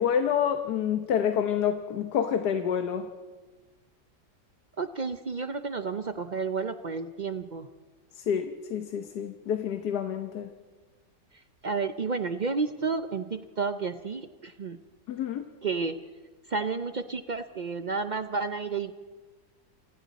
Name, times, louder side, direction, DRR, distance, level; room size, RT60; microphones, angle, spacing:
voice 1, 0.0-3.1 8.2-10.5 15.1-15.5, left 8 dB, 75° left, 7 dB, 1.6 m, -28 dB
voice 2, 4.8-7.7 11.3-14.8 15.6-16.0 16.5-18.9, right 4 dB, 65° right, 9 dB, 0.4 m, -31 dB
28.0 x 26.0 x 4.2 m, 1.4 s
omnidirectional pair, 1.7 m